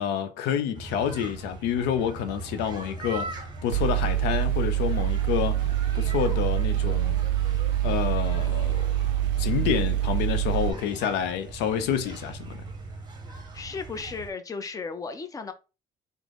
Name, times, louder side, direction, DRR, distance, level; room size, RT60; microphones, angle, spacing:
voice 1, 0.0-5.7 5.9-7.2 7.8-8.9 9.4-12.7, left 8 dB, 90° left, 0.5 m, -28 dB
sound 1, 0.7-14.3, right 2 dB, 25° right, 0.7 m, -40 dB
Mechanical fan, 3.7-10.7, right 12 dB, 90° right, 0.4 m, -25 dB
voice 2, 13.3-15.5, left 4 dB, 20° left, 0.5 m, -35 dB
3.6 x 2.0 x 3.3 m
cardioid pair, 110°, 17 cm